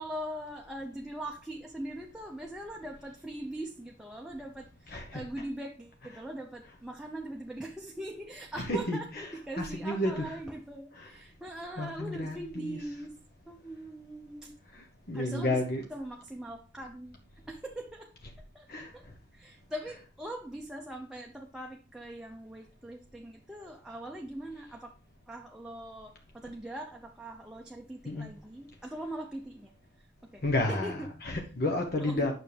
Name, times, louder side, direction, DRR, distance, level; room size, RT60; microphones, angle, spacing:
voice 1, 0.0-13.1 13.5-14.5 15.1-15.6 15.9-17.2 17.5-18.1 18.5-19.1 19.3-24.9 25.3-29.7 30.0-30.4 30.7-31.1 32.0-32.3, right 1 dB, 5° right, 0.6 m, -41 dB
voice 2, 4.9-5.5 6.0-6.2 8.5-10.4 10.9-11.2 11.8-12.8 14.7-15.9 18.7-18.9 19.8-19.9 28.1-28.3 30.4-32.3, left 1 dB, 55° left, 1.0 m, -32 dB
9.3 x 6.2 x 3.4 m
head